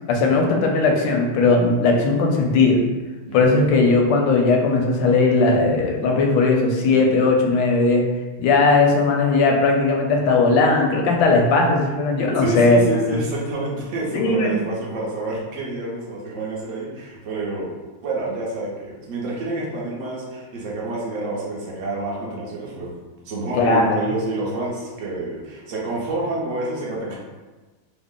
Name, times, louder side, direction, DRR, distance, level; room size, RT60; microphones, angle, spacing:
voice 1, 0.1-2.8 3.3-8.0 8.4-12.8 13.1-13.2 14.1-14.5 23.6-24.0, left 3 dB, 75° left, 1 dB, 1.1 m, -18 dB
voice 2, 12.1-17.7 18.0-22.9 23.2-27.2, right 2 dB, 65° right, -4 dB, 0.7 m, -28 dB
3.3 x 2.1 x 3.6 m, 1.2 s
omnidirectional pair, 2.2 m